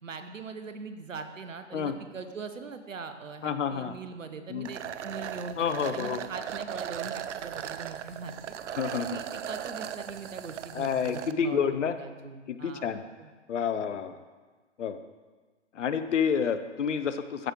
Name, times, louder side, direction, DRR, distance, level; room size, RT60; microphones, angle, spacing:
voice 1, 0.0-8.5 9.0-11.7 12.0-13.3 13.8-13.9, right 4 dB, 90° right, 8 dB, 0.9 m, -41 dB
voice 2, 3.4-3.9 4.5-4.7 5.6-6.3 8.8-9.2 10.7-12.0 12.5-13.0 13.5-14.2 14.8-15.0 15.7-17.5, left 7 dB, 70° left, 12 dB, 0.7 m, -29 dB
sound 1, 4.6-11.3, right 9 dB, 70° right, 0.5 m, -37 dB
14.0 x 5.0 x 3.0 m, 1.4 s
figure-of-eight pair, 130°, 37 cm